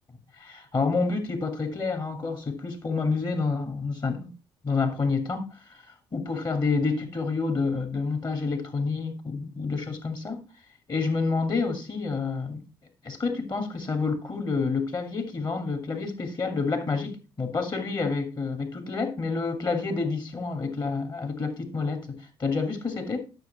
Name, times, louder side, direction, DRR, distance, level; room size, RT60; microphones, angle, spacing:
voice 1, 0.3-4.3 4.6-5.8 6.1-10.4 10.9-12.6 13.0-23.2, left 4 dB, 35° left, 2.4 m, -28 dB
11.0 x 6.4 x 4.2 m
figure-of-eight pair, 45°, 13 cm